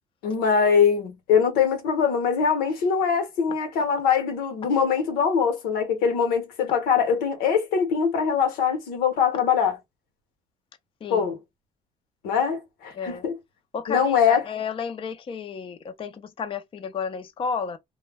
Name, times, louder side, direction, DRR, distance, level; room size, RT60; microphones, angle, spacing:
voice 1, 0.2-9.8 11.1-11.4 12.2-13.3 13.9-14.4, left 6 dB, 90° left, 0.8 m, -22 dB
voice 2, 12.9-13.3 13.7-17.8, left 5 dB, 35° left, 0.5 m, -32 dB
2.1 x 2.1 x 3.3 m
cardioid pair, 85°, 15 cm